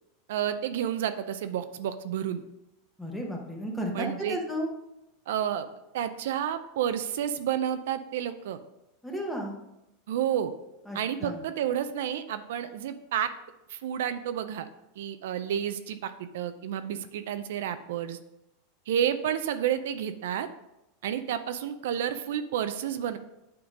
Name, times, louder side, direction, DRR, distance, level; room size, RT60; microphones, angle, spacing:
voice 1, 0.3-2.4 3.9-4.4 5.3-5.7 5.9-8.6 10.1-10.5 10.9-13.3 13.7-14.7 15.0-18.2 18.9-20.5 21.0-23.2, right 9 dB, 70° right, 10 dB, 0.5 m, -30 dB
voice 2, 3.0-4.7 9.0-9.6 10.9-11.4, equal, 5° left, 0 dB, 1.0 m, -33 dB
8.7 x 3.7 x 5.0 m, 0.90 s
supercardioid pair, 165°, 0 cm